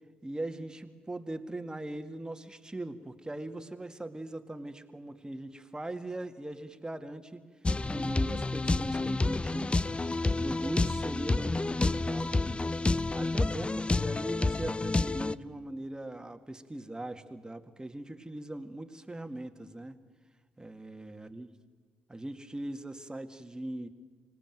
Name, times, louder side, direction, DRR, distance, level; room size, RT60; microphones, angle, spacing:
voice 1, 0.2-7.4 7.8-9.7 10.4-12.8 13.1-20.0 20.6-21.5 22.1-23.9, right 1 dB, 15° right, 8 dB, 2.0 m, -40 dB
sound 1, 7.6-15.3, left 3 dB, 20° left, 0.6 m, -29 dB
25.5 x 19.0 x 9.3 m, 1.5 s
hypercardioid pair, 45°, 5 cm